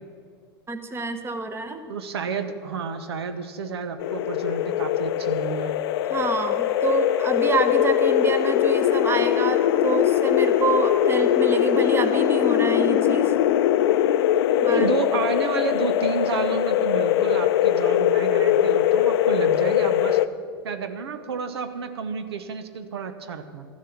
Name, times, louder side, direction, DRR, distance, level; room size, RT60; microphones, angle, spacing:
voice 1, 0.7-1.8 6.1-13.3 14.6-14.9, right 3 dB, 20° right, 8 dB, 1.1 m, -27 dB
voice 2, 1.9-5.7 14.6-20.2 20.6-23.7, right 5 dB, 90° right, 9 dB, 0.9 m, -30 dB
sound 1, 4.0-20.3, left 11 dB, 75° left, 0.5 m, -21 dB
13.0 x 7.4 x 7.2 m, 2.2 s
hypercardioid pair, 110°, 13 cm